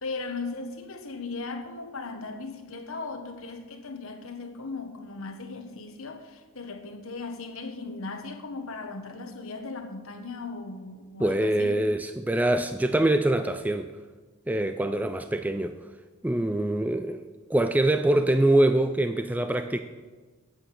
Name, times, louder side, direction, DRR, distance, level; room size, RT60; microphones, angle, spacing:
voice 1, 0.0-11.8, left 3 dB, 65° left, 1.3 m, -37 dB
voice 2, 11.2-13.9 14.5-15.8 16.2-19.8, right 1 dB, 5° right, 0.3 m, -24 dB
9.9 x 8.5 x 7.5 m
head